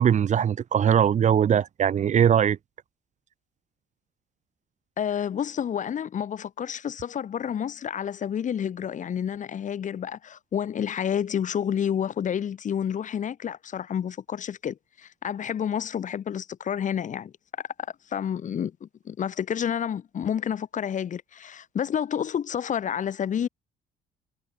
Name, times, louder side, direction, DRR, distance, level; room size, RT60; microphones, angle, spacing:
voice 1, 0.0-2.6, right 8 dB, 45° right, 1.6 m, -21 dB
voice 2, 5.0-17.7 18.1-23.5, left 8 dB, 50° left, 6.4 m, -29 dB
cardioid pair, 110°, 17 cm